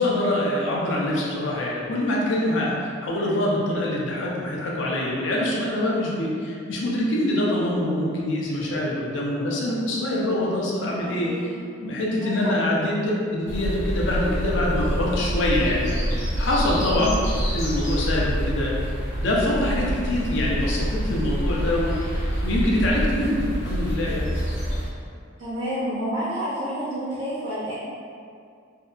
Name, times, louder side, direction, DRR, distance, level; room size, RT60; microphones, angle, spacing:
voice 1, 0.0-11.3 11.8-17.1 17.5-18.7 19.2-21.9 22.4-24.3, left 1 dB, 65° left, -4 dB, 0.5 m, -24 dB
voice 2, 11.0-11.5 12.2-12.9 16.9-17.2 25.4-27.7, equal, 60° right, -10 dB, 0.5 m, -30 dB
sound 1, 13.5-24.9, equal, 40° left, 0.9 m, -26 dB
2.6 x 2.2 x 2.4 m, 2.3 s
head